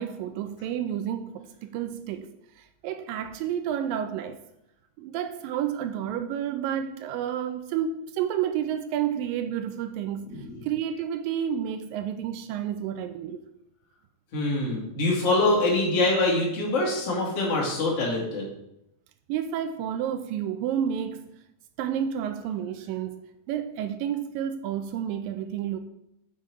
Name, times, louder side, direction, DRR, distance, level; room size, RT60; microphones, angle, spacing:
voice 1, 0.0-2.3 2.6-4.4 5.0-10.3 10.6-13.4 19.3-21.3 21.8-25.8, right 9 dB, 80° right, 2.1 m, -30 dB
voice 2, 14.3-18.5, left 2 dB, 45° left, 2.9 m, -24 dB
7.4 x 5.5 x 4.6 m
omnidirectional pair, 4.3 m